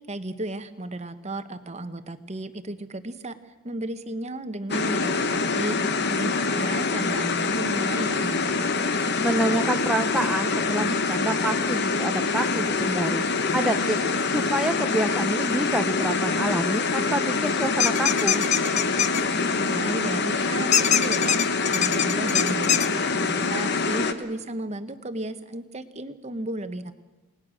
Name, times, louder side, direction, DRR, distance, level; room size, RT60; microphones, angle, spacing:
voice 1, 0.1-5.8 6.1-8.6 19.5-26.9, right 1 dB, 30° right, 10 dB, 1.1 m, -34 dB
sound 1, 4.7-24.1, left 4 dB, 50° left, 1.2 m, -25 dB
voice 2, 9.2-13.2 13.5-14.0 14.3-18.4, right 1 dB, ahead, 4 dB, 0.7 m, -27 dB
sound 2, 17.8-19.2 20.7-22.9, left 9 dB, 30° left, 0.7 m, -22 dB
28.5 x 19.0 x 6.4 m, 1.1 s
head